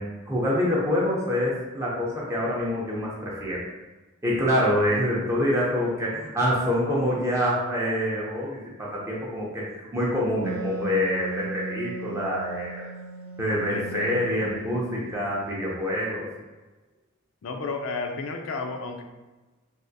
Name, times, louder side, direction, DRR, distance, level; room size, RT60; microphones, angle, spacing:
voice 1, 0.0-3.6 4.2-12.8 13.4-16.3, equal, 15° right, -5 dB, 0.5 m, -26 dB
Wind instrument woodwind instrument, 10.4-15.8, right 4 dB, 70° right, 0.3 m, -37 dB
voice 2, 13.7-14.1 17.4-19.0, left 4 dB, 70° left, 4 dB, 0.4 m, -32 dB
3.4 x 2.4 x 2.6 m, 1.2 s
head